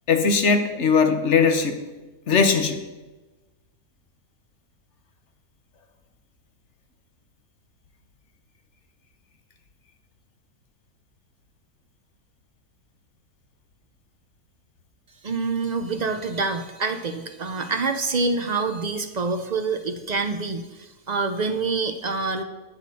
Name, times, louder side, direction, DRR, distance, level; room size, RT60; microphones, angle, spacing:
voice 1, 0.1-1.8 2.3-2.8, left 5 dB, 50° left, 7 dB, 1.2 m, -19 dB
voice 2, 15.2-22.4, right 4 dB, 55° right, 7 dB, 0.4 m, -26 dB
18.5 x 6.3 x 4.2 m, 1.2 s
omnidirectional pair, 1.6 m